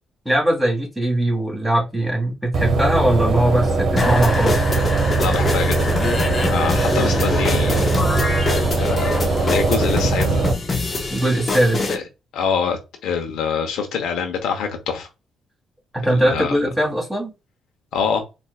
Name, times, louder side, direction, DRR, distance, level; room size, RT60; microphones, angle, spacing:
voice 1, 0.3-4.6 11.1-11.9 15.9-17.3, right 1 dB, ahead, 2.0 m, -20 dB
sound 1, 2.5-10.5, right 3 dB, 60° right, 1.0 m, -20 dB
sound 2, 4.0-12.0, left 3 dB, 35° left, 0.8 m, -25 dB
voice 2, 5.2-5.9 6.5-8.0 8.7-10.5 11.9-12.0 12.3-15.1 16.1-16.6 17.9-18.2, left 6 dB, 85° left, 0.8 m, -25 dB
4.3 x 2.6 x 2.3 m
cardioid pair, 90°, 0 cm